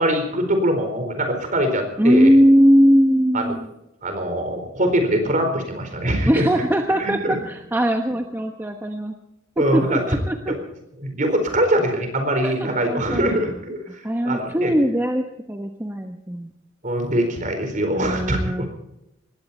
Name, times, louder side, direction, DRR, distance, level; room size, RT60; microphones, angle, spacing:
voice 1, 0.0-2.4 3.3-3.5 4.0-6.6 7.0-7.3 9.6-10.0 10.5-10.6 11.0-13.8 14.2-14.7 16.8-18.7, right 1 dB, 40° right, 6 dB, 4.3 m, -22 dB
voice 2, 2.0-3.7 6.3-9.1 9.7-10.5 12.4-13.4 13.9-16.5 17.9-18.7, equal, 10° right, 4 dB, 1.0 m, -20 dB
20.0 x 16.5 x 4.3 m, 0.85 s
head